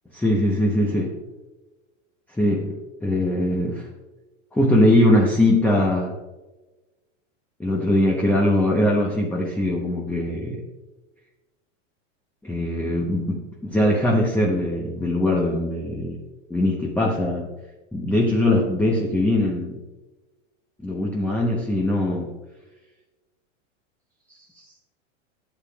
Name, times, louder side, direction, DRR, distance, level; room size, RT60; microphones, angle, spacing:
voice 1, 0.1-1.2 2.3-3.9 4.5-6.1 7.6-10.6 12.4-16.2 16.5-17.5 17.9-19.8 20.8-22.3 24.3-24.7, left 1 dB, 5° left, -1 dB, 0.8 m, -21 dB
12.0 x 8.1 x 2.3 m, 1.1 s
hypercardioid pair, 125°, 38 cm